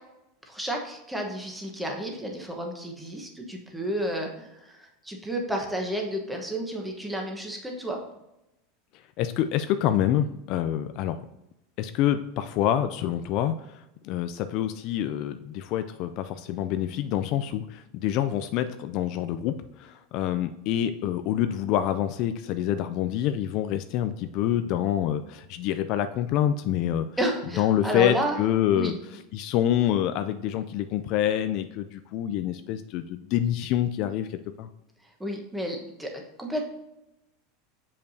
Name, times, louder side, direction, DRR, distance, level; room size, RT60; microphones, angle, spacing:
voice 1, 0.4-8.0 27.2-28.4 28.7-29.0 35.2-36.1 36.4-36.6, right 1 dB, 5° right, 1 dB, 1.1 m, -31 dB
voice 2, 9.2-11.3 11.8-27.1 27.6-34.7, left 11 dB, 50° left, 10 dB, 0.3 m, -27 dB
6.7 x 5.3 x 2.7 m, 0.90 s
supercardioid pair, 150°, 0 cm